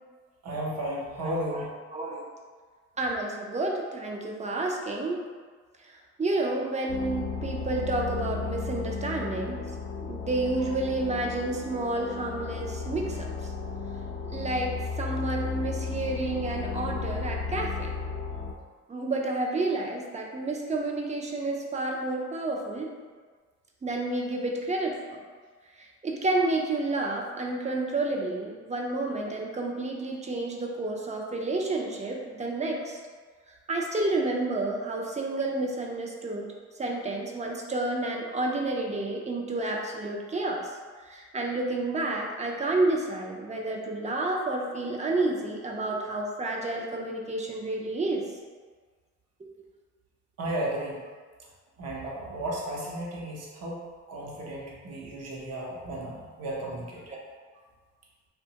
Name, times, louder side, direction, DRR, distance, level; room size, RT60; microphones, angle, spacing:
voice 1, 0.4-1.7 50.4-51.0 51.8-53.8 54.1-57.0, right 1 dB, 55° right, -3 dB, 0.8 m, -34 dB
voice 2, 1.2-1.6 1.9-2.3 3.0-5.2 6.2-9.6 10.0-13.3 14.3-17.9 18.9-22.9 23.8-25.2 26.0-33.0 33.7-36.5 36.8-40.6 41.1-48.3 57.1-57.2, right 2 dB, 25° right, 0 dB, 0.4 m, -30 dB
sound 1, 6.9-18.5, left 4 dB, 45° left, 0.5 m, -34 dB
2.9 x 2.2 x 2.8 m, 1.5 s
cardioid pair, 90°, 30 cm